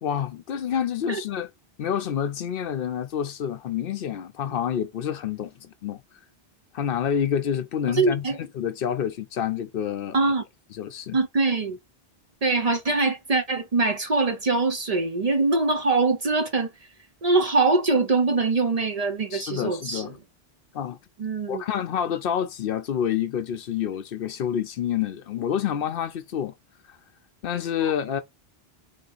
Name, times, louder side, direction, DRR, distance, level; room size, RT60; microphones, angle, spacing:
voice 1, 0.0-1.5 1.8-6.0 6.7-10.2 10.7-11.2 19.3-20.2 20.7-21.0 21.5-26.5 26.9-27.0 27.4-28.2, left 9 dB, 65° left, 0.7 m, -28 dB
voice 2, 7.9-8.4 10.1-10.4 11.1-11.8 12.4-16.7 17.2-20.1 21.2-21.6, right 3 dB, 45° right, 0.6 m, -23 dB
3.6 x 2.7 x 3.8 m
omnidirectional pair, 1.0 m